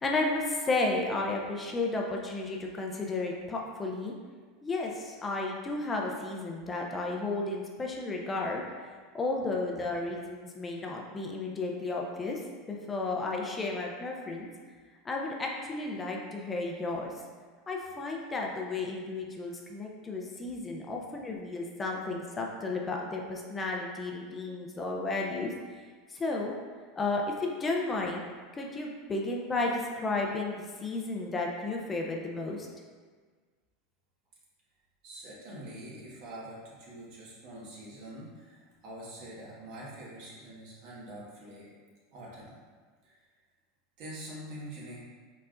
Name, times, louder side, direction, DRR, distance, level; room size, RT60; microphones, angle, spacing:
voice 1, 0.0-4.1 4.6-8.6 9.1-12.4 12.7-14.5 15.0-17.1 17.7-25.5 26.1-26.5 27.0-28.3 28.5-32.7, left 3 dB, 20° left, 0 dB, 0.5 m, -33 dB
voice 2, 20.6-20.9 35.0-41.7 42.1-42.5 43.0-43.3 44.0-45.0, right 1 dB, 60° right, -5 dB, 1.5 m, -45 dB
4.5 x 4.1 x 2.5 m, 1.5 s
supercardioid pair, 120°, 0 cm